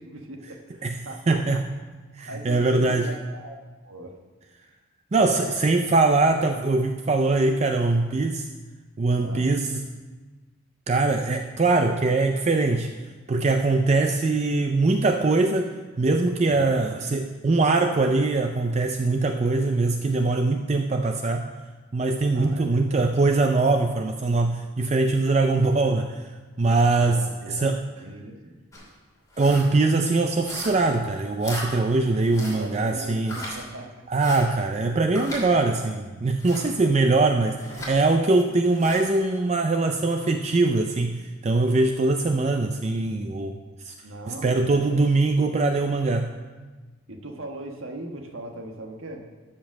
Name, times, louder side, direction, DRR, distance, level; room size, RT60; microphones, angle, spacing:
voice 1, 0.0-1.6 2.2-4.1 5.2-5.6 9.2-9.5 16.5-17.0 22.3-23.1 26.9-28.6 32.5-34.0 44.0-45.1 47.1-49.2, right 1 dB, 75° right, 3 dB, 1.3 m, -39 dB
voice 2, 1.3-1.6 2.1-3.1 5.1-8.5 9.0-9.8 10.9-12.9 13.3-21.5 21.9-26.3 26.6-27.9 29.4-33.4 34.1-43.6 43.8-43.9 44.3-46.3, right 3 dB, 30° right, 5 dB, 0.4 m, -22 dB
sound 1, 28.7-28.9 29.3-29.7 30.4-30.9 31.4-31.7 32.3-32.6 33.2-33.5 34.2-34.4 35.2-35.4 36.4-36.7 37.6-37.9 38.7-39.0, left 1 dB, 15° left, 2.8 m, -37 dB
13.0 x 5.2 x 6.3 m, 1.3 s
head